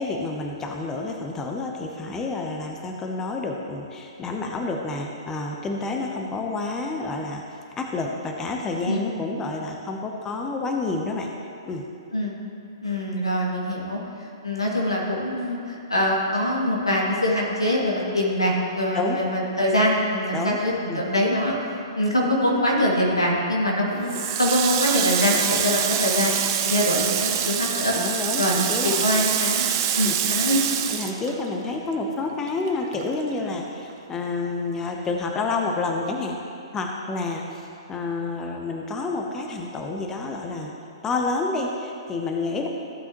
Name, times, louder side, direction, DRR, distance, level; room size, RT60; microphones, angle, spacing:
voice 1, 0.0-7.4 7.8-11.3 11.7-11.9 18.9-19.2 20.3-20.6 20.9-21.0 28.0-29.2 30.0-30.2 30.9-36.4 36.7-40.7 41.0-42.7, left 3 dB, 15° left, 2 dB, 0.8 m, -29 dB
voice 2, 12.8-14.0 14.4-21.5 22.0-24.1 24.4-26.4 26.6-27.9 28.4-28.5 28.8-29.6 30.0-30.6, left 1 dB, 90° left, -4 dB, 2.4 m, -23 dB
Water tap faucet, 24.1-31.9 32.2-33.6, right 9 dB, 40° right, 0.8 m, -25 dB
15.0 x 8.0 x 3.0 m, 2.6 s
figure-of-eight pair, 120°, 3 cm